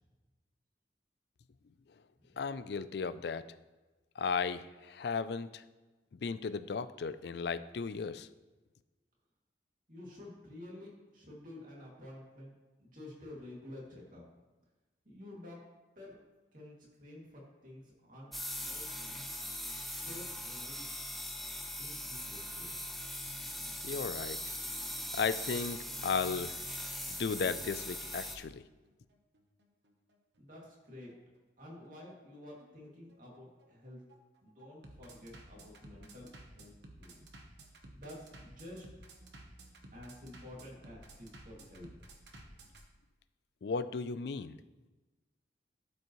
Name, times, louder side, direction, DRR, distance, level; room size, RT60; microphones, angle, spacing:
voice 1, 2.4-3.5 4.2-5.6 6.2-8.3 23.8-24.4 25.1-26.5 27.1-28.6 43.6-44.6, left 5 dB, 65° left, 14 dB, 0.4 m, -35 dB
voice 2, 9.9-12.5 12.8-14.2 15.0-15.6 16.0-16.2 16.5-18.3 18.6-19.1 19.9-20.8 21.8-22.8 30.4-34.0 34.4-36.7 37.0-37.2 37.9-38.8 39.9-41.9, left 1 dB, 45° right, -4 dB, 2.5 m, -50 dB
sound 1, 18.3-28.4, left 1 dB, ahead, 0.6 m, -40 dB
Bass drum, 26.9-42.8, right 2 dB, 75° right, 1.0 m, -55 dB
12.5 x 5.3 x 3.1 m, 1.2 s
head